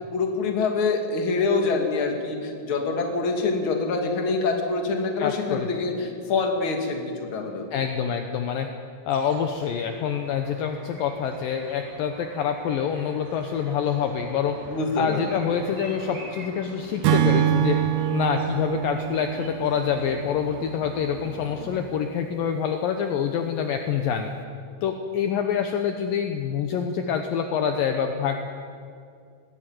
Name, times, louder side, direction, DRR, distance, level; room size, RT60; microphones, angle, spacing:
voice 1, 0.1-7.7 14.7-15.5, left 3 dB, 40° left, 3 dB, 2.3 m, -25 dB
voice 2, 5.2-5.7 7.7-8.7 9.1-14.6 15.0-17.8 18.1-24.3 24.8-28.4, left 7 dB, 75° left, 6 dB, 2.1 m, -26 dB
sound 1, 9.1-21.8, right 2 dB, 35° right, 4.9 m, -45 dB
Acoustic guitar / Strum, 17.0-20.5, right 11 dB, 75° right, 2.9 m, -24 dB
20.5 x 16.0 x 9.3 m, 2.3 s
omnidirectional pair, 5.3 m